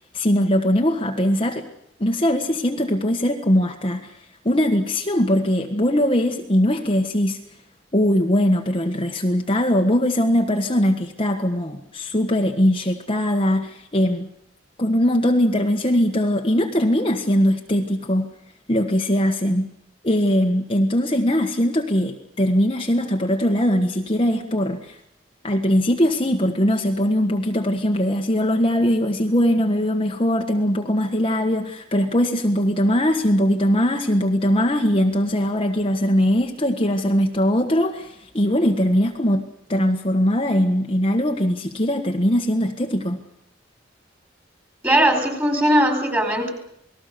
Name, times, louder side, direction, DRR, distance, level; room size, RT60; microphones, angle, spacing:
voice 1, 0.1-1.7 2.0-4.2 4.4-7.4 7.9-14.3 14.8-18.3 18.7-19.7 20.0-25.0 25.4-43.2, equal, 30° left, 2 dB, 1.6 m, -21 dB
voice 2, 44.8-46.5, right 1 dB, 10° right, 6 dB, 4.7 m, -19 dB
28.5 x 20.0 x 6.9 m, 0.76 s
head